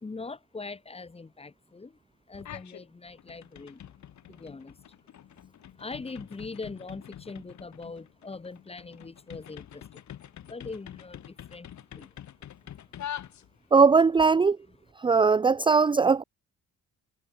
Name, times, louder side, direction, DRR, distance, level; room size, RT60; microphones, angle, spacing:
voice 1, 0.0-2.0 2.3-3.8 4.3-4.8 5.8-10.0 10.4-12.1, left 3 dB, 20° left, 1.4 m, -42 dB
sound 1, 2.3-2.8 3.2-13.8, left 10 dB, 65° left, 5.3 m, -45 dB
voice 2, 13.7-14.6 15.0-16.2, right 5 dB, 15° right, 0.5 m, -20 dB
cardioid pair, 90°, 30 cm